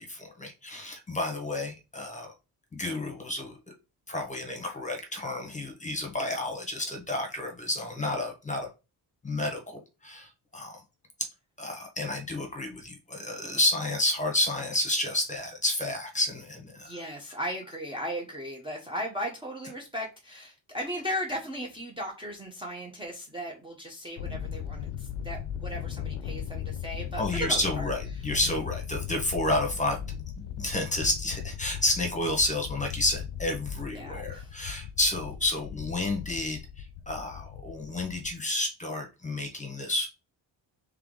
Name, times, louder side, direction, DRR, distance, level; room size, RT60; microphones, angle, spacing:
voice 1, 0.0-2.3 2.7-3.6 4.1-8.7 9.2-10.8 11.6-17.0 27.2-30.0 30.6-40.1, left 1 dB, 15° left, 1.2 m, -30 dB
voice 2, 16.8-27.9 33.9-34.5, equal, 10° right, 0.8 m, -36 dB
Thunder, 24.2-38.4, left 8 dB, 85° left, 0.6 m, -38 dB
3.5 x 3.4 x 3.8 m
cardioid pair, 120°, 46 cm